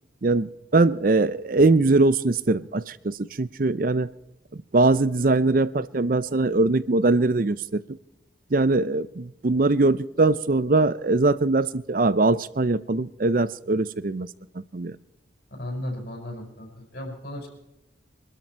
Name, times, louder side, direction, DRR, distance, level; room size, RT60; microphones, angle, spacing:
voice 1, 0.2-4.1 4.7-8.0 8.5-14.3 14.7-14.9, right 3 dB, 45° right, 17 dB, 0.5 m, -21 dB
voice 2, 15.5-17.5, left 1 dB, 60° left, 2 dB, 5.2 m, -35 dB
24.0 x 13.0 x 4.5 m, 0.88 s
head